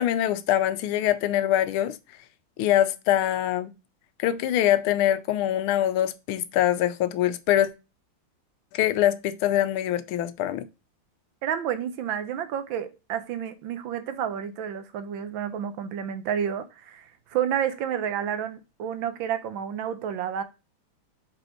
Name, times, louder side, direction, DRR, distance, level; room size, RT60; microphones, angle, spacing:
voice 1, 0.0-2.0 2.6-3.7 4.2-7.7 8.7-10.7, left 12 dB, 85° left, 1.5 m, -24 dB
voice 2, 11.4-20.4, right 9 dB, 75° right, 1.4 m, -30 dB
5.3 x 4.7 x 4.3 m
omnidirectional pair, 2.3 m